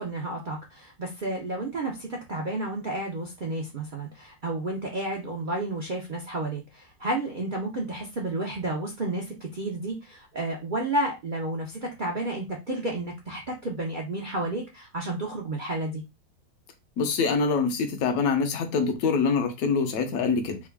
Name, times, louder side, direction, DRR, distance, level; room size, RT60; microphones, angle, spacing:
voice 1, 0.0-16.0, right 2 dB, 55° right, 0.5 m, -31 dB
voice 2, 17.0-20.6, left 5 dB, 65° left, 1.0 m, -25 dB
3.5 x 2.3 x 3.4 m
omnidirectional pair, 1.9 m